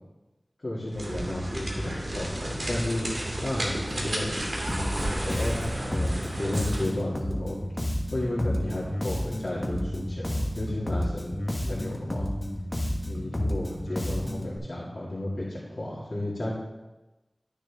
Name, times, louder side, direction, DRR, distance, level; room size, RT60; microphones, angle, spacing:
voice 1, 0.6-4.5 5.2-5.5 5.8-7.6 8.1-12.3 13.1-16.5, left 1 dB, 50° left, -9 dB, 2.5 m, -33 dB
sound 1, 0.9-7.0, right 1 dB, 60° right, 2.2 m, -32 dB
Bass guitar, 4.7-14.6, equal, 30° left, 1.4 m, -31 dB
12.0 x 6.4 x 3.6 m, 1.1 s
wide cardioid pair, 50°, 0 cm